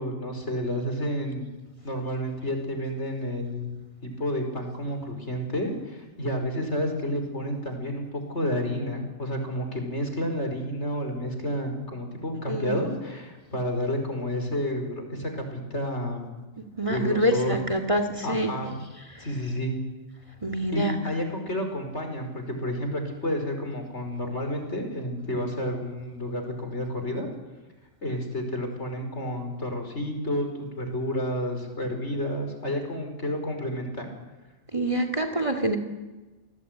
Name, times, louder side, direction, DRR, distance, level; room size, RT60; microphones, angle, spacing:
voice 1, 0.0-1.5 1.8-3.7 4.0-16.3 16.9-17.6 18.2-18.8 19.2-19.8 20.7-27.3 28.0-34.1, equal, 55° left, 5 dB, 5.3 m, -30 dB
voice 2, 12.5-12.8 16.6-18.5 19.1-19.3 20.4-21.0 34.7-35.8, right 1 dB, 25° right, 7 dB, 2.2 m, -26 dB
28.5 x 19.5 x 9.4 m, 1.2 s
omnidirectional pair, 1.4 m